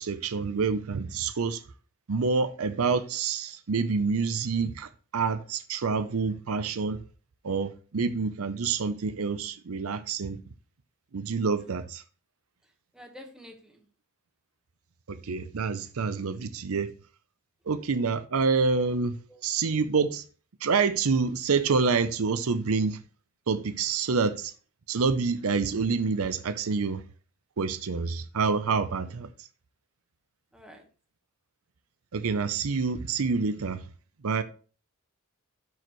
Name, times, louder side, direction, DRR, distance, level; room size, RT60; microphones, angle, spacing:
voice 1, 0.0-1.6 2.1-7.0 7.4-10.4 11.1-12.0 15.1-16.9 17.7-19.1 19.4-20.2 20.6-23.0 23.5-24.5 24.9-27.0 27.6-29.3 32.1-33.8 34.2-34.4, right 4 dB, 70° right, 0.6 m, -27 dB
voice 2, 12.9-13.8 19.3-19.4 30.5-30.8, left 1 dB, 5° right, 1.3 m, -49 dB
12.0 x 4.8 x 3.1 m
head